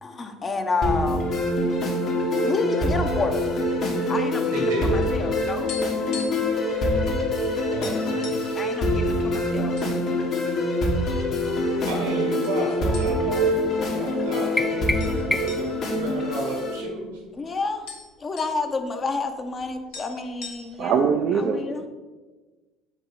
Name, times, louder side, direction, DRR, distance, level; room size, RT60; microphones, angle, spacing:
voice 1, 0.0-1.3 2.4-3.5 4.1-5.7 8.6-9.7 17.3-17.8 18.2-21.0 21.4-21.9, left 3 dB, 35° left, 5 dB, 0.9 m, -29 dB
sound 1, 0.8-16.8, left 1 dB, 55° left, 1.5 m, -25 dB
voice 2, 4.5-5.0 7.5-8.4 11.9-17.2, right 2 dB, 90° right, 0 dB, 1.9 m, -33 dB
sound 2, 5.7-6.6 6.8-7.0 7.4-7.5 7.8-8.6 9.2-9.9 10.3-10.4 11.1-11.7 12.4-12.6 12.9-13.5 13.8-13.9 15.0-17.1 17.4-17.5 17.6-18.6 19.6-19.7 19.9-21.0, left 5 dB, 70° left, 1.5 m, -40 dB
sound 3, 14.6-15.8, left 1 dB, 10° left, 0.4 m, -28 dB
voice 3, 20.8-21.9, right 6 dB, 60° right, 4 dB, 0.5 m, -23 dB
7.3 x 3.0 x 5.5 m, 1.2 s
hypercardioid pair, 70°, 0 cm